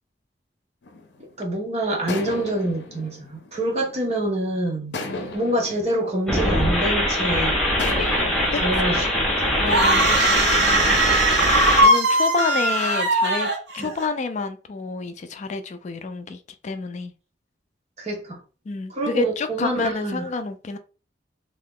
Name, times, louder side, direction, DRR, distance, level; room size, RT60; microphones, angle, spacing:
sound 1, 0.8-1.5 2.1-4.3 4.9-7.2 7.8-10.0, left 2 dB, 85° left, 0.6 m, -36 dB
voice 1, 1.4-5.0 5.3-7.6 8.6-9.1 9.4-9.7 13.8-13.9 18.0-18.4 18.9-20.3, right 1 dB, 40° right, 0.9 m, -26 dB
sound 2, 6.3-11.9, left 1 dB, 5° left, 0.8 m, -22 dB
voice 2, 9.6-11.0 11.8-17.1 18.7-20.8, left 4 dB, 40° left, 0.3 m, -29 dB
sound 3, 9.7-14.1, right 1 dB, 85° right, 0.7 m, -20 dB
2.8 x 2.4 x 3.5 m
head